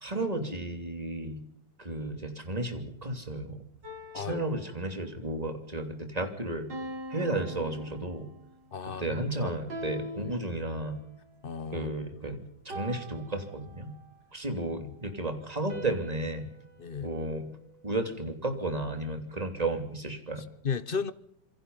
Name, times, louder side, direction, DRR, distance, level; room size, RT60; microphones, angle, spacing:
voice 1, 0.0-1.4 1.8-3.6 4.1-6.7 7.1-8.3 9.0-11.0 11.7-13.9 14.3-16.5 17.0-17.5 17.8-20.4, right 2 dB, 20° right, 3.1 m, -33 dB
sound 1, 3.8-5.3 6.7-8.5 9.7-11.1 12.7-14.2 15.7-17.9, equal, 80° right, 5.7 m, -43 dB
voice 2, 4.1-4.5 8.7-9.5 10.2-10.3 11.4-11.9 14.8-14.9 16.8-17.1 20.4-21.1, left 6 dB, 40° left, 0.9 m, -35 dB
27.0 x 24.0 x 5.6 m
omnidirectional pair, 1.9 m